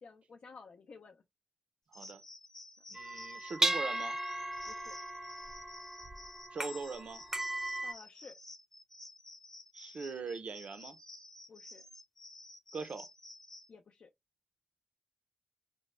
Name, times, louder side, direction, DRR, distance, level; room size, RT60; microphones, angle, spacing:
voice 1, 0.0-1.2 4.7-5.0 7.8-8.4 11.5-11.9 13.7-14.1, left 4 dB, 70° left, 0.5 m, -54 dB
sound 1, 1.9-13.7, left 2 dB, 20° left, 0.8 m, -53 dB
voice 2, 2.9-4.2 6.5-7.2 9.7-11.0 12.7-13.1, right 4 dB, 65° right, 0.5 m, -41 dB
sound 2, 3.0-7.9, right 1 dB, 20° right, 0.5 m, -36 dB
3.3 x 2.1 x 3.1 m
wide cardioid pair, 100°, 2 cm